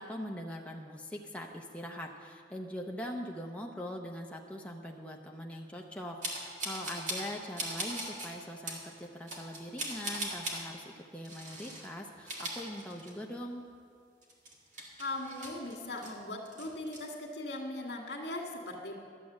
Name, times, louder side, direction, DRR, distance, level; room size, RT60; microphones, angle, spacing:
voice 1, 0.0-13.6, equal, 5° left, 0 dB, 0.7 m, -42 dB
sound 1, 6.2-7.3 7.6-8.3 8.7-8.8 9.3-10.6 11.2-11.9 12.2-13.4 13.7-13.8 14.2-16.1 16.5-17.0, right 1 dB, 45° right, 1.8 m, -39 dB
voice 2, 15.0-18.9, left 2 dB, 85° left, 1 dB, 1.9 m, -39 dB
12.0 x 7.5 x 7.3 m, 2.1 s
head